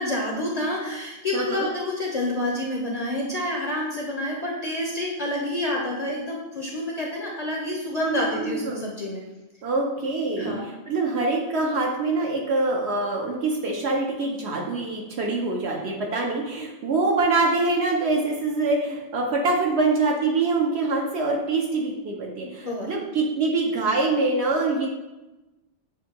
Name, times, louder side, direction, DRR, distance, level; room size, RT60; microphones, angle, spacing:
voice 1, 0.0-9.2 10.4-10.6 22.6-22.9, left 1 dB, 45° left, -2 dB, 0.6 m, -28 dB
voice 2, 1.3-1.7 8.0-8.8 9.6-24.9, right 3 dB, 70° right, 0 dB, 0.9 m, -25 dB
7.1 x 2.6 x 2.8 m, 1.0 s
omnidirectional pair, 1.2 m